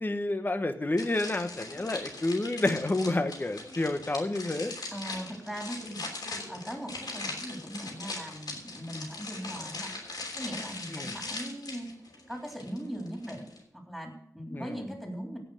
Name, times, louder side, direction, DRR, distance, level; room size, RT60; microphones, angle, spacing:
voice 1, 0.0-4.7 10.9-11.2 14.5-14.8, left 2 dB, 30° left, 9 dB, 1.1 m, -29 dB
sound 1, 1.0-13.6, left 3 dB, 85° left, 3.3 m, -40 dB
voice 2, 4.9-6.0 6.5-9.9 10.3-11.9 12.3-15.4, equal, 5° left, 1 dB, 3.5 m, -39 dB
16.5 x 5.6 x 6.4 m, 0.68 s
wide cardioid pair, 90°, 7 cm